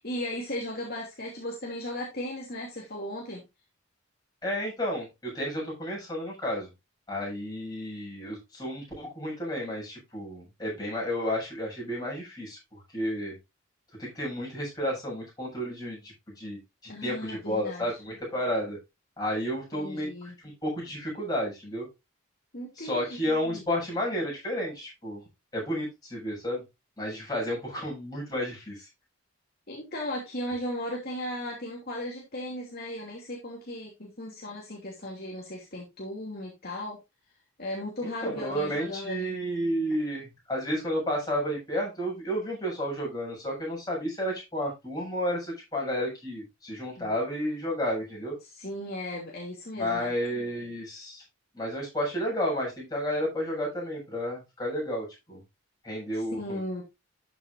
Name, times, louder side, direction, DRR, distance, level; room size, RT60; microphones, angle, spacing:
voice 1, 0.0-3.4 16.9-18.0 19.7-20.3 22.5-23.7 29.7-37.0 37.6-39.3 47.0-47.2 48.4-50.1 56.1-56.8, left 1 dB, 45° left, -2 dB, 2.8 m, -36 dB
voice 2, 4.4-6.7 7.1-13.4 14.0-16.6 17.0-18.8 19.2-20.1 20.4-21.9 22.8-25.2 25.5-26.6 27.0-28.8 38.0-48.3 49.7-51.2 51.5-55.4 55.8-56.6, equal, 15° left, -3 dB, 7.4 m, -31 dB
13.0 x 7.8 x 2.7 m, 0.23 s
head